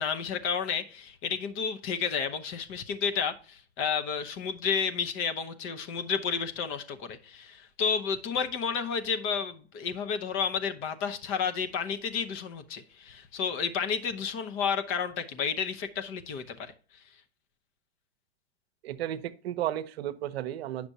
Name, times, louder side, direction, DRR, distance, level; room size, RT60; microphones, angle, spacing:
voice 1, 0.0-16.7, left 6 dB, 40° left, 0.8 m, -31 dB
voice 2, 18.8-20.9, right 12 dB, 70° right, 0.7 m, -33 dB
8.8 x 6.0 x 2.8 m
hypercardioid pair, 110°, 32 cm